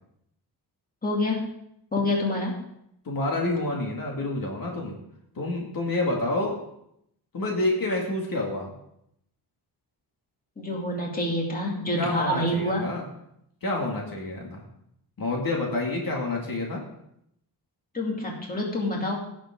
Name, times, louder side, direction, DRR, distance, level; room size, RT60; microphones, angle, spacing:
voice 1, 1.0-1.5 1.9-2.6 10.6-12.8 17.9-19.2, left 1 dB, 20° left, -1 dB, 2.6 m, -27 dB
voice 2, 3.0-4.9 5.4-6.6 7.3-8.8 12.0-13.0 13.6-14.6 15.2-16.8, left 2 dB, 55° left, -1 dB, 2.3 m, -28 dB
16.5 x 7.4 x 3.8 m, 0.76 s
wide cardioid pair, 140°, 40 cm